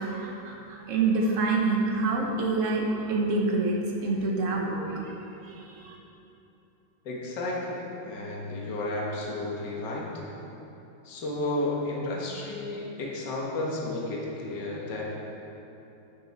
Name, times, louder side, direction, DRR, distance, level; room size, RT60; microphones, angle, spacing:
voice 1, 0.0-5.1 5.4-6.0, right 3 dB, 45° right, -1 dB, 1.3 m, -27 dB
voice 2, 7.0-10.1 11.0-15.0, left 2 dB, 55° left, -3 dB, 1.9 m, -32 dB
11.0 x 8.0 x 4.2 m, 2.9 s
omnidirectional pair, 2.3 m